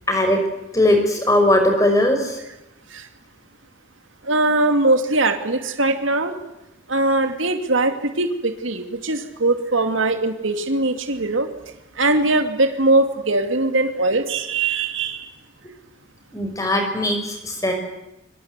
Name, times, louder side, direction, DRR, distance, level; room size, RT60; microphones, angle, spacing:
voice 1, 0.1-0.4 0.7-2.4 16.3-17.7, left 1 dB, 15° left, 4 dB, 5.7 m, -19 dB
voice 2, 4.2-6.4 6.9-11.5 12.0-15.3, right 2 dB, 80° right, 6 dB, 2.5 m, -21 dB
26.0 x 24.5 x 8.2 m, 0.93 s
head